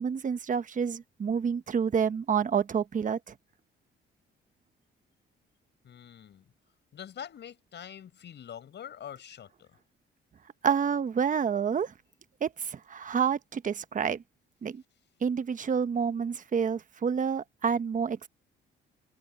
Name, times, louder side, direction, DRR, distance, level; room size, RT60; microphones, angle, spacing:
voice 1, 0.0-3.3 10.6-11.9 12.4-14.2 14.6-14.8 15.2-18.3, right 7 dB, 40° right, 1.1 m, -28 dB
voice 2, 5.8-6.4 6.9-9.7, left 9 dB, 60° left, 6.1 m, -44 dB
open air
cardioid pair, 90°, 20 cm